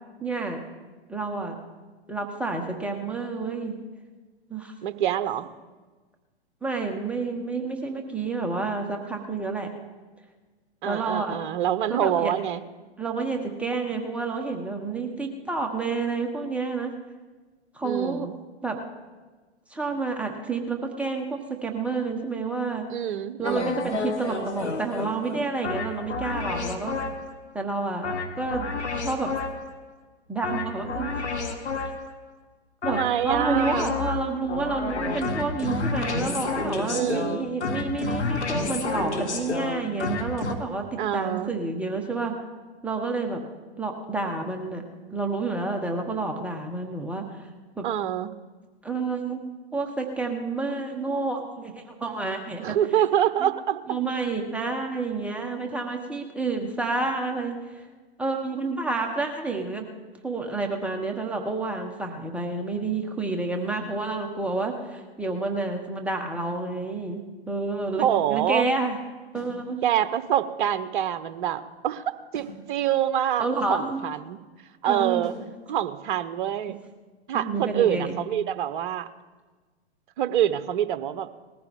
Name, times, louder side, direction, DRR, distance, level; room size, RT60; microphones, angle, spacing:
voice 1, 0.2-0.6 1.1-1.5 2.1-3.8 4.5-4.7 6.6-9.7 10.8-11.4 11.9-12.3 13.0-16.9 17.7-18.3 18.6-18.8 19.7-22.9 23.4-27.0 27.5-28.7 29.0-29.3 30.3-31.1 31.8-31.9 32.8-42.3 42.8-43.4 43.8-44.8 45.1-47.3 47.8-47.9 48.8-49.4 49.7-52.8 53.4-53.5 53.9-57.8 58.2-59.8 60.2-69.0 69.3-69.8 73.4-74.0 74.8-75.3 77.3-78.2, right 3 dB, 5° right, 1 dB, 1.2 m, -29 dB
voice 2, 4.8-5.5 10.8-12.6 17.8-18.3 22.9-23.9 32.8-33.9 36.9-37.4 41.0-41.5 47.8-48.3 52.6-54.0 68.0-68.7 69.8-72.0 72.3-74.4 74.8-75.3 75.7-76.8 77.3-79.1 80.2-81.3, right 10 dB, 50° right, 12 dB, 0.9 m, -26 dB
sound 1, 23.4-27.4 28.0-29.8 30.4-32.2 32.8-40.5, left 3 dB, 85° left, 1.6 m, -30 dB
sound 2, 69.3-69.6 72.3-72.6 75.2-75.5, left 2 dB, 50° left, 5.6 m, -44 dB
20.0 x 14.5 x 3.7 m, 1.3 s
hypercardioid pair, 115°, 33 cm